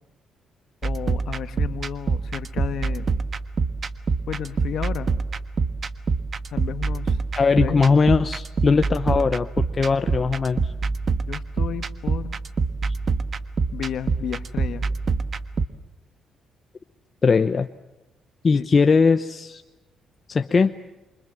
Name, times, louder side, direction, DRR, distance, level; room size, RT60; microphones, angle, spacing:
voice 1, 0.8-3.1 4.3-5.1 6.5-7.2 7.6-7.8 11.3-12.4 13.7-14.8 18.5-18.7, left 10 dB, 70° left, 12 dB, 1.4 m, -32 dB
sound 1, 0.8-15.7, right 4 dB, 45° right, 1.3 m, -26 dB
voice 2, 7.4-10.7 17.2-17.7 18.4-19.6 20.3-20.7, left 4 dB, 35° left, 9 dB, 0.9 m, -20 dB
27.5 x 25.0 x 7.5 m, 1.0 s
cardioid pair, 90°, 0 cm